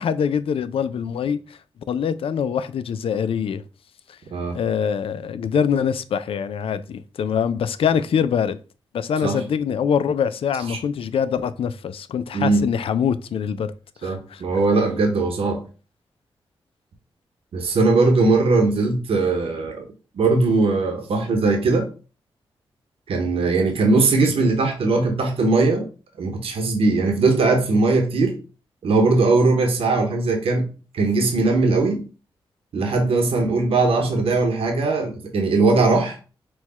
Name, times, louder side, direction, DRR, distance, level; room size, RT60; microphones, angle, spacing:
voice 1, 0.0-1.6 1.9-3.6 4.1-4.2 4.5-8.6 8.9-13.7 14.0-14.4, left 7 dB, 75° left, 0.4 m, -24 dB
voice 2, 12.3-12.7 14.0-15.6 17.5-19.8 20.1-21.9 23.1-25.9 26.2-28.4 28.8-30.7 30.9-32.0 32.7-36.2, right 3 dB, 80° right, 1.0 m, -20 dB
4.5 x 2.3 x 4.1 m
cardioid pair, 50°, 10 cm